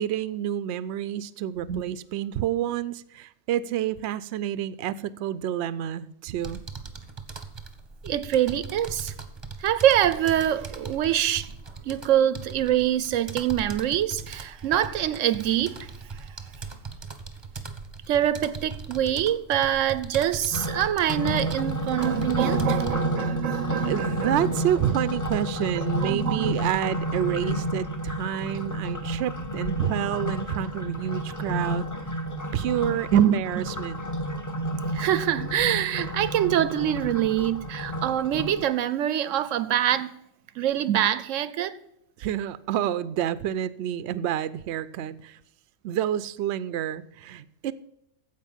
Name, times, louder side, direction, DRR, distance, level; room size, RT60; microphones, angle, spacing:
voice 1, 0.0-6.6 23.8-31.9 32.5-34.0 42.2-45.4 45.8-47.7, right 11 dB, 70° right, 0.8 m, -29 dB
sound 1, 6.4-22.9, right 4 dB, 25° right, 1.0 m, -39 dB
voice 2, 8.0-9.1 9.6-11.5 11.8-15.9 18.1-24.4 25.8-26.6 33.1-33.6 34.9-40.1 40.6-41.8, right 11 dB, 85° right, 1.0 m, -24 dB
sound 2, 20.5-38.7, equal, 15° left, 1.1 m, -30 dB
15.0 x 5.1 x 7.2 m
omnidirectional pair, 1.3 m